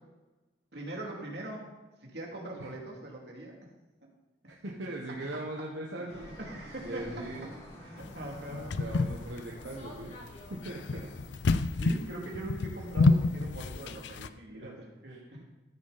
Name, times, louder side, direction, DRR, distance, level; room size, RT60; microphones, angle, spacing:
voice 1, 0.7-1.7 2.0-3.6 6.0-7.2 7.8-8.8 11.7-15.4, right 1 dB, 70° right, -1 dB, 2.6 m, -41 dB
voice 2, 4.5-6.3 6.8-7.5 8.8-10.1 10.5-11.1 11.5-11.7 14.5-15.2, right 1 dB, 90° right, -2 dB, 1.2 m, -40 dB
Fixed-wing aircraft airplane, 6.1-11.2, equal, 35° left, 2.1 m, -48 dB
sound 1, 8.0-14.3, left 3 dB, 80° left, 0.5 m, -29 dB
14.5 x 6.6 x 4.1 m, 1.1 s
head